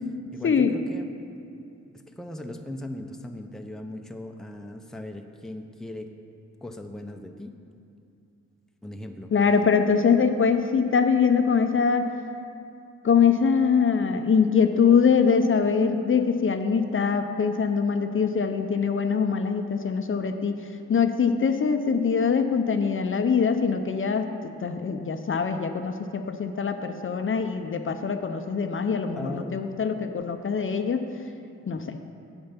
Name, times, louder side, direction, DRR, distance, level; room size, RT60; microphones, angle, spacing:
voice 1, 0.3-1.1 2.1-6.1 6.6-7.6 8.8-9.3 29.2-29.6, left 1 dB, ahead, 4 dB, 0.6 m, -38 dB
voice 2, 9.3-12.1 13.0-20.5 20.9-24.3 24.6-31.0 31.7-32.0, left 6 dB, 45° left, 7 dB, 0.6 m, -23 dB
8.7 x 7.9 x 5.7 m, 2.6 s
wide cardioid pair, 95°, 29 cm